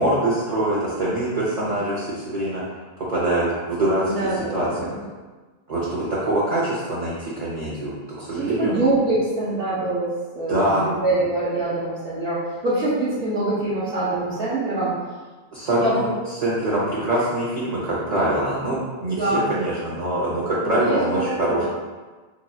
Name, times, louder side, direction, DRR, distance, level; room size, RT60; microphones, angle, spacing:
voice 1, 0.0-2.6 3.0-4.0 4.5-4.7 5.7-8.7 10.5-10.9 15.5-21.6, right 1 dB, 45° right, -8 dB, 0.7 m, -24 dB
voice 2, 4.0-5.0 8.4-12.4 12.6-14.9 15.8-16.1 18.1-18.2 19.1-19.4 20.6-21.6, right 2 dB, 70° right, -11 dB, 1.1 m, -24 dB
4.2 x 3.0 x 2.3 m, 1.3 s
omnidirectional pair, 1.1 m